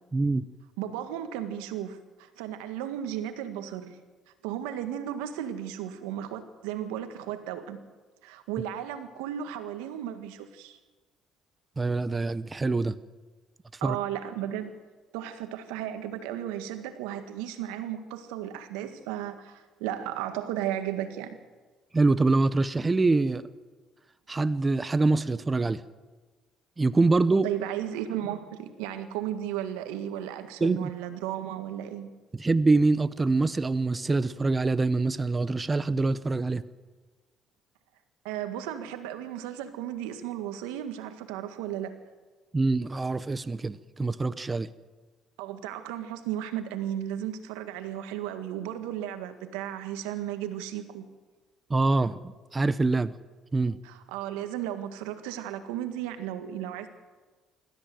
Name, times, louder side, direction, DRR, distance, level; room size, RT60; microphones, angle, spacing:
voice 1, 0.1-0.4 11.8-12.9 13.8-14.0 21.9-23.4 24.3-25.8 26.8-27.5 30.6-30.9 32.3-36.6 42.5-44.7 51.7-53.1 53.5-53.8, right 3 dB, 25° right, 15 dB, 0.9 m, -25 dB
voice 2, 0.8-4.0 4.4-7.8 8.2-10.8 13.8-14.8 15.1-21.4 27.4-32.1 38.2-42.0 45.4-51.1 53.8-56.9, right 11 dB, 90° right, 9 dB, 1.8 m, -34 dB
26.0 x 14.0 x 7.8 m, 1.3 s
supercardioid pair, 75°, 0 cm